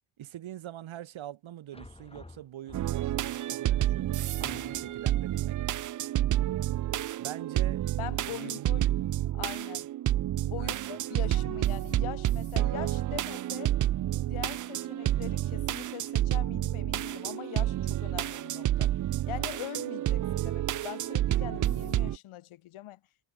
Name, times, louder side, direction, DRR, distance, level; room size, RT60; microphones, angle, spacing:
voice 1, 0.2-5.8 7.2-7.9 8.3-8.9 10.6-11.0, right 12 dB, 70° right, 4.5 m, -44 dB
sound 1, 1.7-3.2 3.9-4.0 4.4-5.2, left 2 dB, 10° left, 3.4 m, -49 dB
sound 2, 2.7-22.2, right 13 dB, 40° right, 0.4 m, -29 dB
voice 2, 8.0-8.9 9.3-9.9 10.4-13.7 14.2-18.9 19.3-23.0, left 14 dB, 80° left, 2.4 m, -42 dB
cardioid pair, 110°, 48 cm